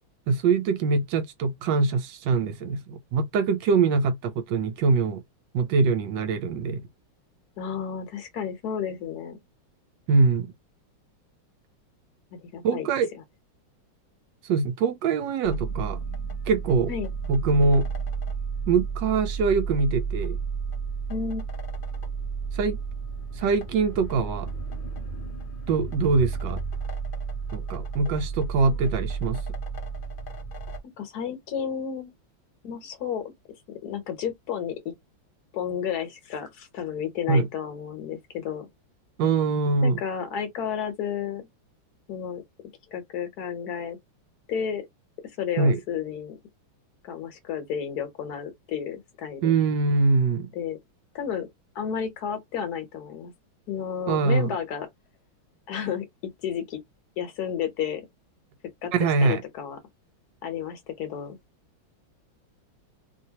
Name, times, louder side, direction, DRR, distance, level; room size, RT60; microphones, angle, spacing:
voice 1, 0.3-5.2 5.5-6.8 10.1-10.5 12.6-13.1 14.5-16.0 16.5-16.9 17.3-17.8 18.7-20.4 22.6-22.8 23.4-24.5 25.7-26.6 27.5-29.4 37.3-37.5 39.2-40.0 45.6-45.8 49.4-50.5 54.1-54.5 58.9-59.4, right 4 dB, 70° right, 1.2 m, -23 dB
voice 2, 7.6-9.4 12.3-12.9 16.9-17.1 21.1-21.4 28.5-28.8 31.0-32.1 32.6-33.2 33.8-34.9 35.5-38.7 39.8-41.5 42.1-42.4 42.9-44.0 44.5-44.8 45.4-46.4 47.0-49.6 50.5-50.8 51.1-51.5 51.7-53.3 53.7-54.9 55.7-56.8 57.2-58.0 58.8-59.8 60.4-61.4, left 8 dB, 55° left, 1.3 m, -32 dB
sound 1, 15.4-30.8, right 5 dB, 85° left, 0.4 m, -32 dB
3.2 x 2.9 x 2.8 m
omnidirectional pair, 2.2 m